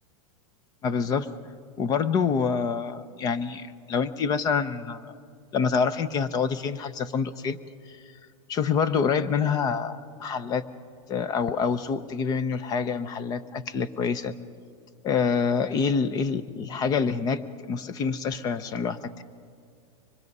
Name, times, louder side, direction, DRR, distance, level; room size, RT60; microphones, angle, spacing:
voice 1, 0.8-1.3 1.8-5.1 5.5-7.6 7.9-8.0 8.5-10.6 11.1-14.3 15.0-17.4 17.7-19.2, left 6 dB, 20° left, 14 dB, 0.6 m, -26 dB
25.0 x 21.5 x 5.4 m, 2.2 s
supercardioid pair, 155°, 18 cm